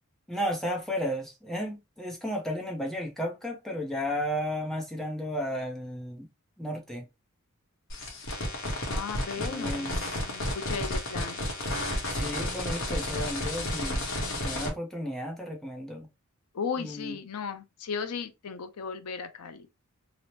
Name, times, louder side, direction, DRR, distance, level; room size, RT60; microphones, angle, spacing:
voice 1, 0.3-6.3 6.6-7.0 9.4-10.2 12.1-16.1 16.8-17.2, equal, ahead, 0.5 m, -34 dB
sound 1, 7.9-14.7, left 1 dB, 60° left, 0.9 m, -32 dB
voice 2, 8.9-11.4 16.5-19.7, left 6 dB, 85° left, 0.5 m, -36 dB
2.9 x 2.0 x 2.9 m
head